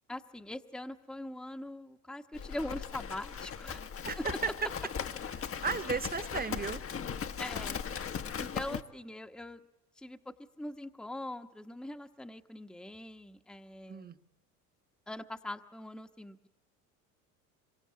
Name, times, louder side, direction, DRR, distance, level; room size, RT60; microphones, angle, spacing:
voice 1, 0.1-3.9 4.2-4.3 7.4-7.8 8.4-9.6 10.0-14.1 15.1-16.5, left 1 dB, ahead, 5 dB, 1.1 m, -42 dB
Livestock farm animals working animals, 2.3-8.8, left 7 dB, 30° left, 1.1 m, -38 dB
voice 2, 4.0-4.5 5.4-6.8 13.9-14.2, right 5 dB, 20° right, 12 dB, 1.4 m, -35 dB
26.5 x 23.5 x 8.7 m, 0.93 s
hypercardioid pair, 75°, 44 cm